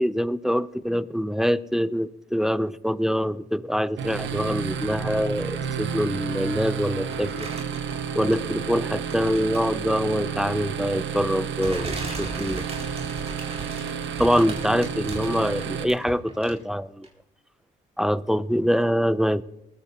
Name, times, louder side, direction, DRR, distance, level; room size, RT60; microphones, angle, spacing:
voice 1, 0.0-7.5 8.2-12.7 14.2-17.1 18.0-19.4, equal, ahead, 0.4 m, -24 dB
sound 1, 4.0-15.8, right 7 dB, 70° right, 1.3 m, -31 dB
sound 2, 7.1-8.6 9.0-9.8 10.8-10.9 11.6-16.7 17.0-17.1, right 2 dB, 30° right, 4.5 m, -38 dB
20.0 x 15.0 x 2.8 m
cardioid pair, 90°, 20 cm